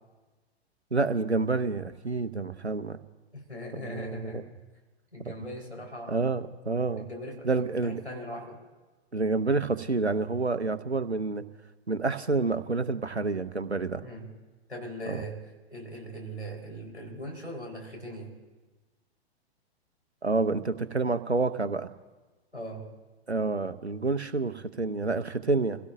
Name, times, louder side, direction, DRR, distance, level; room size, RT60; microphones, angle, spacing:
voice 1, 0.9-3.0 3.7-4.4 6.1-7.1 7.4-8.0 9.1-11.4 11.9-14.0 15.1-15.2 20.2-21.9 23.3-25.8, right 3 dB, 90° right, 12 dB, 0.9 m, -28 dB
voice 2, 3.3-4.5 5.1-6.3 7.0-8.6 14.0-14.3 14.7-15.4 15.7-18.4 22.5-22.8, equal, 90° left, -1 dB, 4.3 m, -40 dB
28.5 x 17.0 x 2.6 m, 1.2 s
figure-of-eight pair, 115°, 32 cm